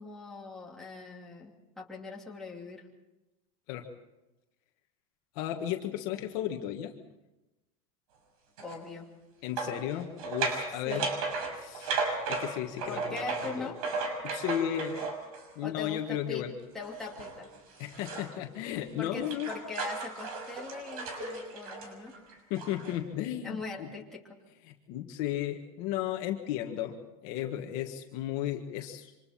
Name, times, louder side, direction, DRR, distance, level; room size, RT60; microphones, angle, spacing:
voice 1, 0.0-2.9 8.6-9.1 10.7-11.0 12.8-13.8 15.6-16.5 16.7-17.5 19.0-22.2 23.4-24.4, left 4 dB, ahead, -4 dB, 2.8 m, -41 dB
voice 2, 5.4-6.9 9.4-11.1 11.5-11.9 12.3-13.7 14.2-15.1 15.6-16.5 17.8-19.5 22.5-23.9 24.7-27.0 27.2-29.1, left 11 dB, 45° left, 3 dB, 1.7 m, -34 dB
sound 1, 8.6-8.8 9.6-15.5 16.8-18.3 18.7-23.0, right 4 dB, 80° right, 6.2 m, -35 dB
28.0 x 26.0 x 4.4 m, 1.0 s
supercardioid pair, 175°, 18 cm